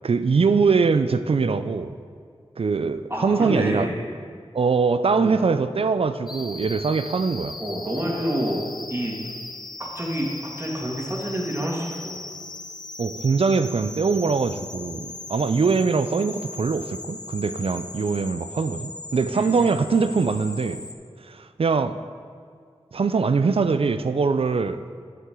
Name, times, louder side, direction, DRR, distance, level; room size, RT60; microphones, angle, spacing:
voice 1, 0.0-2.0 2.6-3.9 4.5-7.6 13.0-20.8 21.3-22.0 22.9-24.8, right 4 dB, 60° right, 11 dB, 0.4 m, -22 dB
voice 2, 3.1-4.0 5.1-5.3 7.6-9.3 9.8-12.2 19.3-19.8, equal, 25° right, -3 dB, 2.1 m, -28 dB
sound 1, 6.3-20.9, left 2 dB, 40° left, 0.7 m, -38 dB
9.4 x 8.1 x 3.7 m, 2.2 s
cardioid pair, 45°, 11 cm